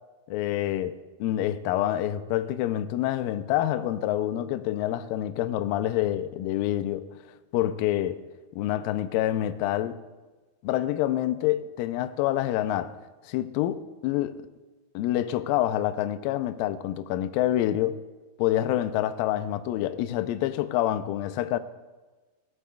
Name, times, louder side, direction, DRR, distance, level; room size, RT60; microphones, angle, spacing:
voice 1, 0.3-7.1 7.5-8.2 8.5-10.0 10.6-12.9 13.3-14.4 14.9-18.0 18.4-21.6, left 13 dB, 85° left, 2.0 m, -27 dB
22.0 x 13.5 x 2.3 m
omnidirectional pair, 4.7 m